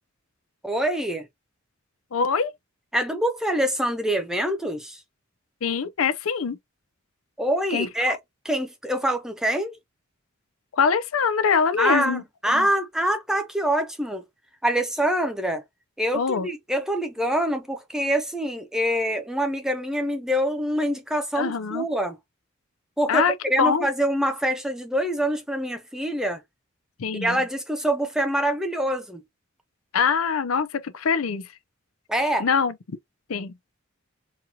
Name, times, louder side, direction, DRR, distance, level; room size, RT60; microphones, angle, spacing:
voice 1, 0.6-1.3 2.9-5.0 7.4-8.2 8.4-9.8 11.8-14.2 14.6-15.6 16.0-22.2 23.0-23.2 23.5-26.4 27.2-29.2 32.1-32.5, right 1 dB, 5° right, 0.6 m, -25 dB
voice 2, 2.1-2.5 5.6-6.6 7.7-7.9 10.8-12.7 16.1-16.5 21.4-21.8 23.1-23.9 27.0-27.4 29.9-31.5 32.4-32.7 33.3-33.5, left 6 dB, 90° left, 0.6 m, -23 dB
4.2 x 2.3 x 2.8 m
head